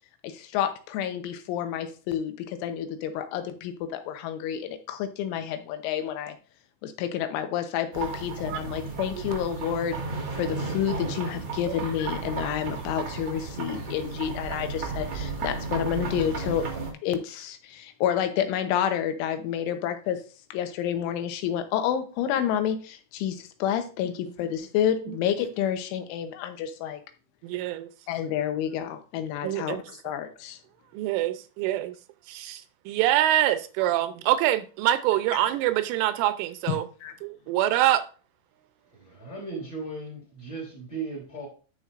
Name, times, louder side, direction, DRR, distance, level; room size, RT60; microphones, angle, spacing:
voice 1, 0.2-6.3 6.8-10.0 10.3-16.7 17.0-20.2 20.5-27.0 28.1-30.6 36.7-37.1, left 9 dB, 85° left, 3.3 m, -29 dB
sound 1, 7.9-16.9, right 4 dB, 65° right, 1.3 m, -34 dB
voice 2, 8.5-8.8 11.7-11.8 25.1-25.2 27.4-27.9 29.4-29.8 30.9-31.9 32.3-36.9 37.2-38.0, right 13 dB, 85° right, 3.1 m, -25 dB
voice 3, 38.9-41.5, right 3 dB, 30° left, 3.1 m, -37 dB
11.0 x 6.4 x 2.5 m
omnidirectional pair, 5.5 m